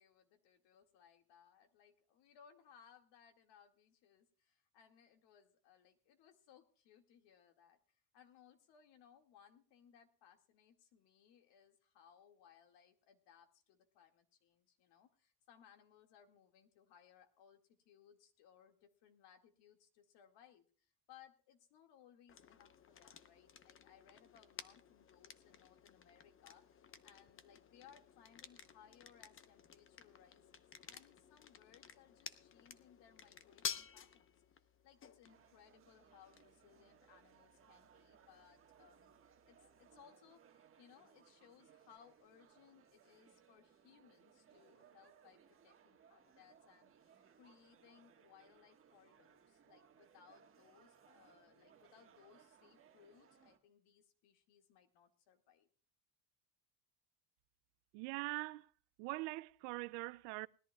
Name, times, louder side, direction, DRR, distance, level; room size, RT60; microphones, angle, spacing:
voice 1, 0.0-39.2 39.5-55.7, left 8 dB, 65° left, 2.1 m, -66 dB
sound 1, 22.3-40.0, left 7 dB, 30° left, 0.8 m, -53 dB
sound 2, 35.3-53.6, right 7 dB, 30° right, 1.5 m, -67 dB
voice 2, 57.9-58.7 59.0-60.5, right 24 dB, 75° right, 0.5 m, -42 dB
20.0 x 13.5 x 2.3 m
cardioid pair, 125°, 44 cm